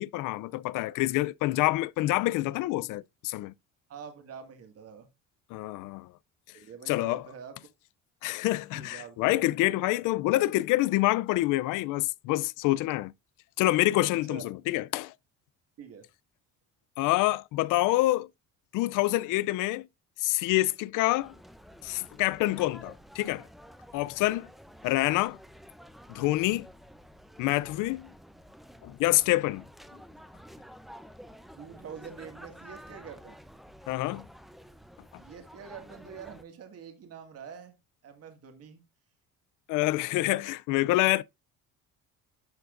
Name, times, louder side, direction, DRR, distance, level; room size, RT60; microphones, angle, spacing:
voice 1, 0.0-3.5 5.5-6.1 6.9-7.2 8.2-13.1 13.6-15.1 17.0-18.3 18.7-19.9 20.2-21.3 21.8-23.4 23.9-24.5 24.8-25.4 26.1-26.7 27.4-28.1 28.8-29.6 33.9-34.2 39.7-41.2, left 18 dB, 80° left, 0.5 m, -27 dB
voice 2, 3.9-5.1 6.5-7.6 8.7-10.0 14.0-14.5 15.8-16.1 31.6-33.4 35.2-37.8 38.0-38.8, right 7 dB, 50° right, 2.0 m, -46 dB
sound 1, 21.2-36.4, equal, ahead, 0.7 m, -51 dB
10.5 x 6.9 x 2.6 m
cardioid pair, 130°, 31 cm